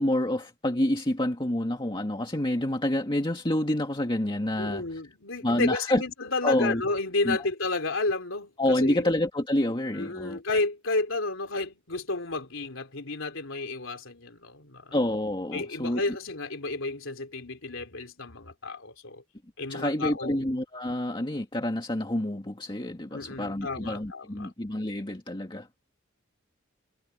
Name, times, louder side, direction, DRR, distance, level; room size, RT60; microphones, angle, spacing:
voice 1, 0.0-4.8 5.4-6.0 6.4-6.8 7.3-7.4 8.6-10.4 14.9-16.0 19.7-25.7, left 1 dB, 25° left, 2.0 m, -28 dB
voice 2, 4.6-9.1 9.9-14.9 15.5-19.2 19.6-20.5 23.1-24.5, left 3 dB, 65° left, 3.7 m, -31 dB
head